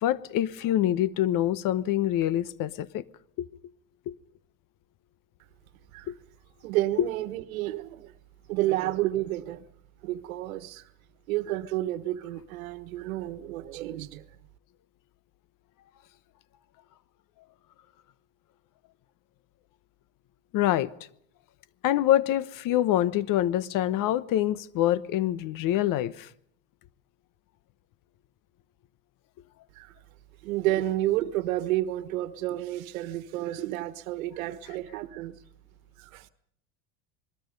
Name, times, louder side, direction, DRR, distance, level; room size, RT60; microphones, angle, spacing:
voice 1, 0.0-3.0 3.4-3.5 4.1-4.2 6.1-6.2 20.5-20.9 21.8-26.3, left 12 dB, 55° left, 1.1 m, -25 dB
voice 2, 6.6-8.1 8.5-9.6 10.0-10.9 11.3-14.2 29.7-29.9 30.4-35.4 36.0-36.3, right 15 dB, 85° right, 1.4 m, -30 dB
27.5 x 20.5 x 5.3 m
supercardioid pair, 105°, 40 cm